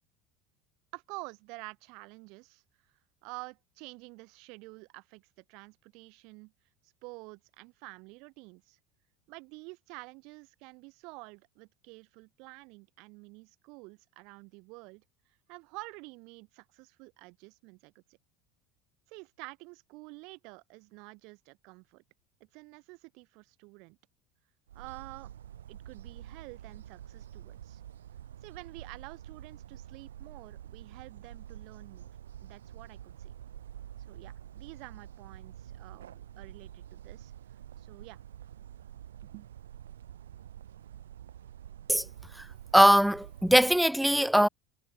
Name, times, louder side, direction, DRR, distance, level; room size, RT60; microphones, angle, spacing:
voice 1, 0.9-2.6 3.2-6.5 7.0-8.8 9.3-15.0 15.5-18.0 19.1-22.0 22.5-24.0 24.7-25.3 25.7-27.8 28.4-32.1 32.4-33.3 34.1-37.3 37.8-38.2 39.2-39.5, right 28 dB, 65° right, 5.0 m, -49 dB
sound 1, 24.7-43.9, right 10 dB, 85° right, 0.9 m, -48 dB
voice 2, 42.7-44.5, equal, ahead, 0.3 m, -21 dB
hypercardioid pair, 80°, 0 cm